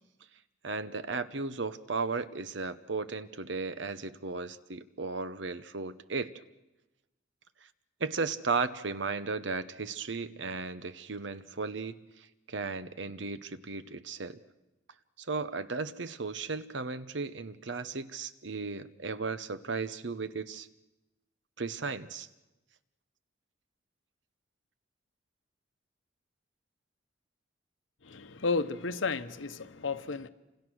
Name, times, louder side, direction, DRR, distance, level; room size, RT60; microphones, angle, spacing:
voice 1, 0.6-6.3 8.0-14.4 15.2-20.7 21.6-22.3, right 4 dB, 65° right, 1.0 m, -35 dB
voice 2, 28.0-30.3, left 4 dB, 85° left, 1.1 m, -32 dB
29.0 x 26.5 x 6.3 m
head